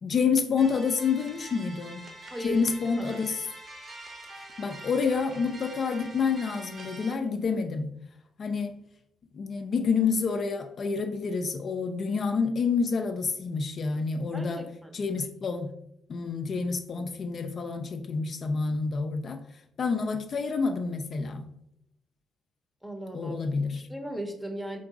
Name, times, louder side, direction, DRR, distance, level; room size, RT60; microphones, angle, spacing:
voice 1, 0.0-2.1 2.4-3.5 4.6-7.9 8.4-8.8 9.3-14.7 14.9-15.7 16.1-19.4 19.8-21.5 23.1-23.9, left 5 dB, 50° left, 5 dB, 0.4 m, -28 dB
sound 1, 0.6-7.1, right 1 dB, 45° right, 0.9 m, -45 dB
voice 2, 2.3-2.7 3.0-3.2 14.3-15.0 22.8-23.4 23.7-24.8, right 1 dB, 5° right, 4 dB, 0.7 m, -37 dB
3.8 x 2.4 x 3.6 m, 0.78 s
cardioid pair, 90°, 0 cm